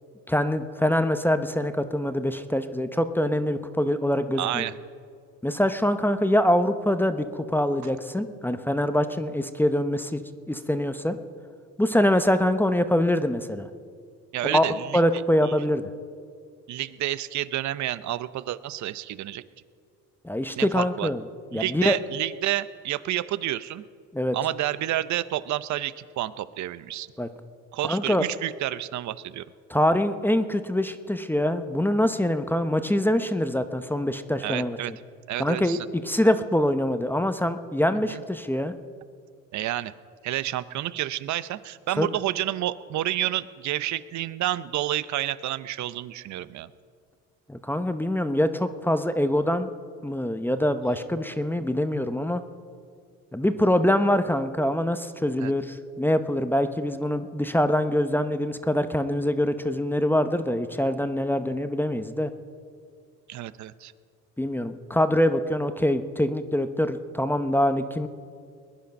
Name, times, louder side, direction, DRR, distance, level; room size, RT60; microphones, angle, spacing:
voice 1, 0.3-4.7 5.4-10.2 10.5-11.2 11.8-13.7 14.5-15.8 20.2-21.2 21.5-22.0 24.1-24.4 27.2-27.3 27.8-28.3 29.7-35.0 35.4-38.7 42.0-42.1 47.5-49.7 50.0-52.4 53.3-62.3 64.4-68.1, left 1 dB, 5° left, 10 dB, 0.7 m, -24 dB
voice 2, 4.4-4.7 14.3-15.0 15.4-15.7 16.7-19.4 20.6-21.1 21.5-23.8 24.3-27.1 27.7-29.4 34.4-34.9 35.3-35.9 38.1-38.2 39.5-39.9 40.2-46.7 55.4-55.5 63.3-63.9, right 14 dB, 55° right, 16 dB, 0.7 m, -29 dB
20.5 x 10.5 x 5.3 m, 2.2 s
supercardioid pair, 80°, 33 cm